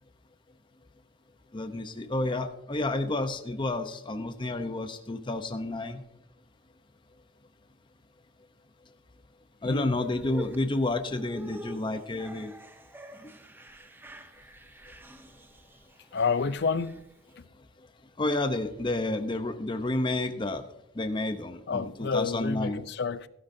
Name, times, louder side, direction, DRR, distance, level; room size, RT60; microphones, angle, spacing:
voice 1, 1.5-6.0 9.6-12.5 17.8-17.9 18.2-20.6 20.9-22.8, left 2 dB, 25° left, 0.7 m, -30 dB
voice 2, 9.6-10.0 16.1-17.0 17.4-17.5 21.7-23.3, left 5 dB, 60° left, 0.5 m, -29 dB
sound 1, 10.0-17.4, equal, 10° right, 0.7 m, -47 dB
16.5 x 11.5 x 2.7 m
head